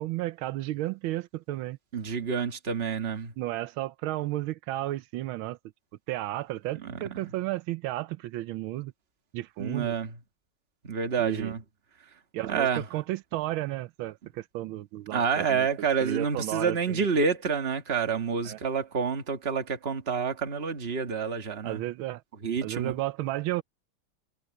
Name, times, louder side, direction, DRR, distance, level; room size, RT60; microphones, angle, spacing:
voice 1, 0.0-1.8 3.4-5.6 6.1-8.9 9.3-9.9 11.2-11.5 12.3-15.7 16.0-17.1 18.4-18.6 21.6-22.2 22.6-23.6, right 16 dB, 80° right, 1.4 m, -33 dB
voice 2, 1.9-3.3 6.8-7.2 9.6-10.2 10.8-11.6 12.4-12.8 15.1-21.8 22.4-22.9, right 6 dB, 30° right, 1.7 m, -28 dB
omnidirectional pair, 2.2 m